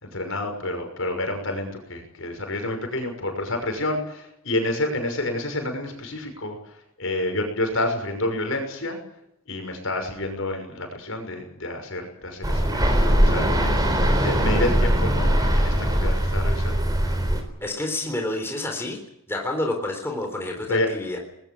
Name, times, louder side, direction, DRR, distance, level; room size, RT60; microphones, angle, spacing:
voice 1, 0.0-9.0 9.5-12.9 13.2-13.8 14.2-16.8 20.7-20.9, left 1 dB, 65° left, 5 dB, 6.1 m, -29 dB
sound 1, 12.4-17.4, equal, 15° right, 3.9 m, -21 dB
voice 2, 17.6-19.0 19.3-21.2, left 1 dB, 10° left, 2 dB, 3.9 m, -29 dB
24.5 x 20.5 x 7.4 m, 0.82 s
head